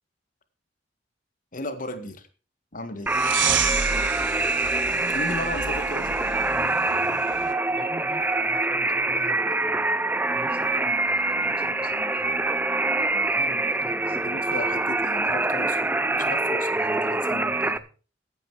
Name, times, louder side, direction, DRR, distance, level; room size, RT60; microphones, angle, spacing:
voice 1, 1.5-2.3 2.7-3.1 5.1-6.2 14.1-17.8, left 1 dB, 45° left, 9 dB, 1.7 m, -35 dB
sound 1, 3.1-17.8, right 2 dB, 10° right, 0.5 m, -25 dB
voice 2, 3.1-3.6 3.9-4.8 7.7-12.7 13.0-15.0, right 1 dB, 30° right, 6 dB, 2.0 m, -45 dB
sound 2, 3.1-7.5, right 7 dB, 90° right, 1.4 m, -30 dB
sound 3, 3.4-3.9 5.8-6.3 8.2-8.7 10.6-11.2, right 1 dB, 70° right, 2.4 m, -50 dB
15.0 x 9.0 x 4.7 m, 0.37 s
head